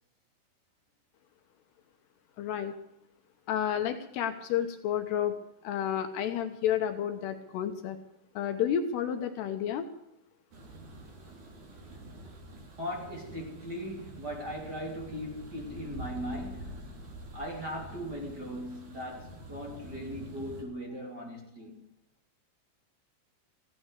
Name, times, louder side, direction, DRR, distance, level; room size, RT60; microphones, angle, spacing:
voice 1, 2.4-2.7 3.5-5.4 5.6-8.0 8.4-9.9, left 9 dB, 75° left, 2.9 m, -31 dB
sound 1, 10.5-20.6, right 1 dB, 45° right, 4.0 m, -46 dB
voice 2, 12.8-16.9 17.3-21.9, equal, 25° right, 3.5 m, -39 dB
16.0 x 10.5 x 8.1 m
omnidirectional pair, 5.1 m